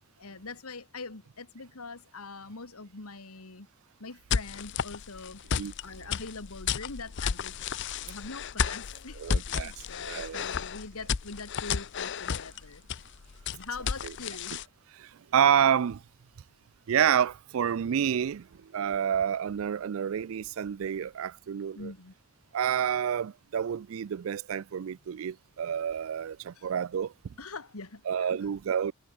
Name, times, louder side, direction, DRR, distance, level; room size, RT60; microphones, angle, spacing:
voice 1, 0.2-3.7 4.0-5.4 5.8-7.6 8.0-12.8 13.5-14.5 21.8-22.1 26.5-26.7 27.4-28.4, left 4 dB, 80° left, 1.9 m, -43 dB
sound 1, 4.3-14.6, left 6 dB, 55° left, 0.6 m, -33 dB
voice 2, 9.2-10.5 14.0-14.1 15.0-16.0 16.9-21.9 22.5-27.1 28.1-28.9, right 8 dB, 65° right, 0.4 m, -29 dB
head